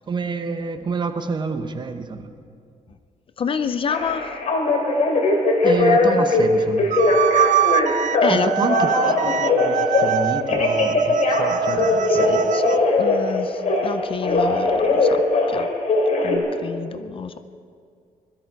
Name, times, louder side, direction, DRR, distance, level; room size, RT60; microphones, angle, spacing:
voice 1, 0.1-2.3 5.6-6.9 8.3-12.4, right 4 dB, 30° right, 8 dB, 0.9 m, -28 dB
voice 2, 3.4-4.4 8.2-8.5 11.8-12.6 13.0-15.2 15.5-15.7 16.2-17.3, left 6 dB, 40° left, 11 dB, 0.6 m, -28 dB
Telephone, 3.9-6.4 6.8-8.3 8.6-10.1 10.5-13.9 14.2-16.4, left 3 dB, 55° left, 2.9 m, -20 dB
sound 1, 6.9-12.8, right 11 dB, 60° right, 0.4 m, -23 dB
21.0 x 13.5 x 4.7 m, 2.2 s
cardioid pair, 135°, 15 cm